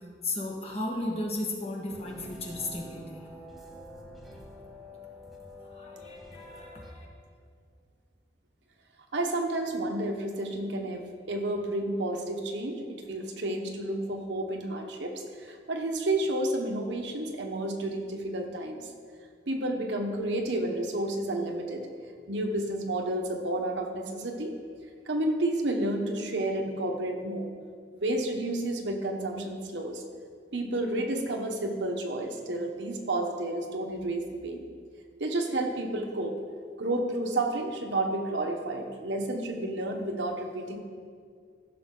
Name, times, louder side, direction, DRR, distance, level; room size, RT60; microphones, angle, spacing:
voice 1, 0.2-3.2 5.7-7.1, left 2 dB, 35° left, -1 dB, 1.6 m, -35 dB
sound 1, 1.9-6.9, left 1 dB, ahead, 1.0 m, -47 dB
voice 2, 9.1-18.9 19.5-21.9 22.3-24.5 25.1-27.5 28.0-30.0 30.5-34.7 35.2-36.3 36.8-40.8, right 1 dB, 70° right, 3 dB, 1.1 m, -31 dB
15.0 x 6.3 x 3.9 m, 2.1 s
head